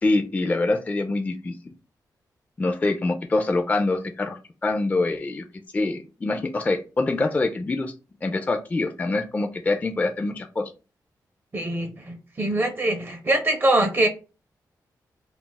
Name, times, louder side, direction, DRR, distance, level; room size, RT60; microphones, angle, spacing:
voice 1, 0.0-1.5 2.6-5.4 5.7-7.9 8.2-10.7, left 2 dB, 20° left, 5 dB, 0.3 m, -25 dB
voice 2, 11.5-14.1, right 1 dB, 30° right, 6 dB, 0.5 m, -23 dB
2.3 x 2.0 x 3.8 m, 0.32 s
wide cardioid pair, 110°, 7 cm